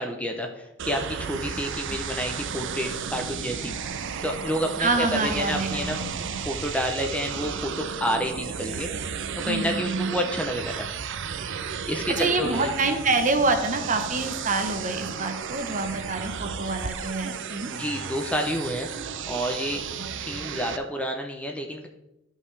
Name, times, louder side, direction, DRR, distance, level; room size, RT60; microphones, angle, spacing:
voice 1, 0.0-3.7 4.2-6.0 6.4-9.1 9.4-10.9 11.9-12.7 17.8-19.8 20.2-21.9, equal, 5° left, 3 dB, 0.6 m, -29 dB
sound 1, 0.8-20.8, right 6 dB, 65° right, 0.5 m, -34 dB
voice 2, 4.8-6.4 9.4-10.1 12.2-17.7, right 3 dB, 40° right, 6 dB, 1.0 m, -26 dB
12.5 x 5.5 x 3.3 m, 0.92 s
head